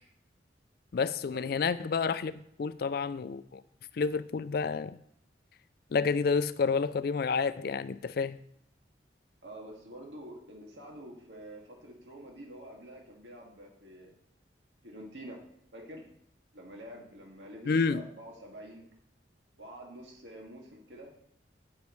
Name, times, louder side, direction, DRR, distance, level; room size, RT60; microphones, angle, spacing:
voice 1, 0.9-3.6 3.9-5.0 5.9-8.4 17.7-18.0, left 5 dB, 55° left, 0.4 m, -29 dB
voice 2, 9.4-14.1 14.8-15.4 15.7-16.1 16.5-18.8 19.6-21.1, right 1 dB, 75° right, 2.1 m, -47 dB
8.7 x 8.6 x 3.1 m
head